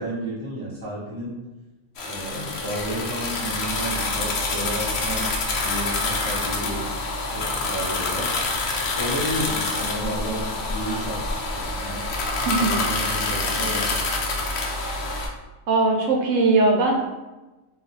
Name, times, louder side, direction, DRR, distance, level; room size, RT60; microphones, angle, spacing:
voice 1, 0.0-1.4 2.0-5.3 5.6-6.8 7.3-8.3 8.9-12.0 12.4-13.9, right 1 dB, 30° left, -9 dB, 0.6 m, -32 dB
sound 1, 2.0-15.3, left 3 dB, 65° left, 0.7 m, -27 dB
voice 2, 12.5-12.8 15.7-16.9, right 3 dB, 70° right, 0 dB, 0.9 m, -20 dB
2.6 x 2.4 x 4.0 m, 1.1 s
omnidirectional pair, 1.4 m